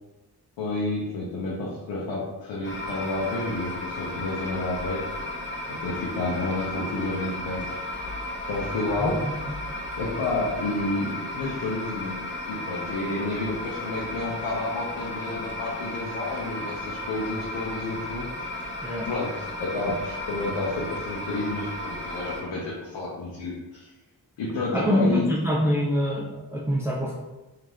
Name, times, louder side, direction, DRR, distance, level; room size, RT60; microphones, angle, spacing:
voice 1, 0.6-5.1 5.7-7.7 8.5-9.2 9.9-12.1 12.4-18.3 19.1-23.9 24.4-25.2, left 2 dB, 85° left, -5 dB, 0.8 m, -30 dB
sound 1, 2.6-22.4, left 1 dB, 30° left, 0.9 m, -34 dB
voice 2, 9.0-9.3 18.8-19.1 24.7-27.2, equal, 5° right, -4 dB, 0.5 m, -25 dB
3.1 x 2.7 x 3.8 m, 1.1 s
cardioid pair, 50°, 42 cm